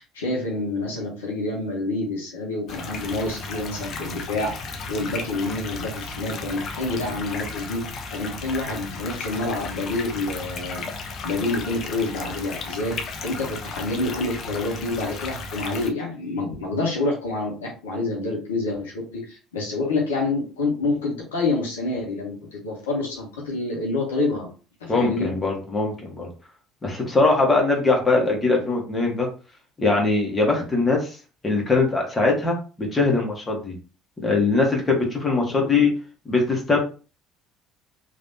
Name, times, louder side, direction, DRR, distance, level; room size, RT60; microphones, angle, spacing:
voice 1, 0.0-4.5 4.9-7.8 8.1-24.5 24.8-25.3 35.5-35.7, left 2 dB, 75° left, -3 dB, 0.9 m, -27 dB
sound 1, 2.7-15.9, left 4 dB, 45° left, 0.6 m, -34 dB
voice 2, 24.9-26.3 26.8-29.3 29.8-31.1 31.4-33.7 34.2-35.9 36.2-36.8, left 3 dB, 20° left, 0 dB, 1.3 m, -21 dB
3.2 x 2.6 x 2.7 m, 0.35 s
figure-of-eight pair, 60°, 0 cm